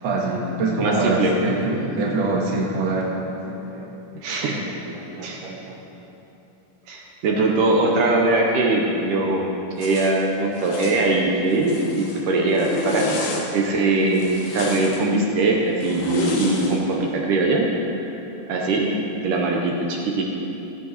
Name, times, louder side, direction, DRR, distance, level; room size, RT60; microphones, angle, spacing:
voice 1, 0.0-3.9 4.3-5.8, right 2 dB, 55° right, -2 dB, 1.3 m, -25 dB
voice 2, 0.8-1.3 4.2-4.6 5.2-5.5 6.9-14.3 14.5-15.5 15.8-18.1 18.5-19.0 19.2-20.2, right 2 dB, 75° right, -1 dB, 2.2 m, -21 dB
Zipper (clothing), 9.8-10.1 10.6-11.0 11.5-12.2 12.5-13.5 14.1-15.0 15.8-16.8, left 3 dB, 60° left, 2.2 m, -29 dB
16.0 x 7.6 x 4.1 m, 3.0 s
omnidirectional pair, 4.2 m